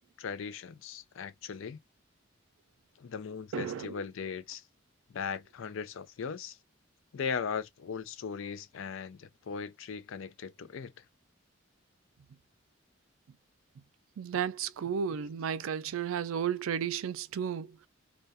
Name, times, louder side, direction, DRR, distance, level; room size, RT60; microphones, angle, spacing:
voice 1, 0.2-1.8 3.0-4.6 5.1-6.6 7.1-11.0, left 6 dB, 75° left, 0.4 m, -38 dB
voice 2, 3.5-3.9 14.2-17.7, right 8 dB, 80° right, 0.3 m, -33 dB
2.3 x 2.2 x 2.5 m
head